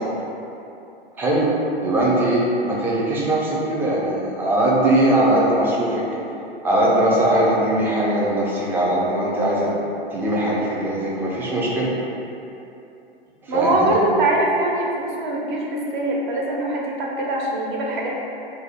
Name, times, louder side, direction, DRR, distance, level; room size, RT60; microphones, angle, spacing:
voice 1, 1.1-1.5 1.8-6.0 6.6-9.7 10.1-11.9 13.4-13.9, right 1 dB, 5° right, -6 dB, 0.3 m, -20 dB
voice 2, 13.5-18.1, right 2 dB, 55° right, -3 dB, 0.6 m, -22 dB
2.6 x 2.1 x 4.0 m, 2.8 s
hypercardioid pair, 110°, 30 cm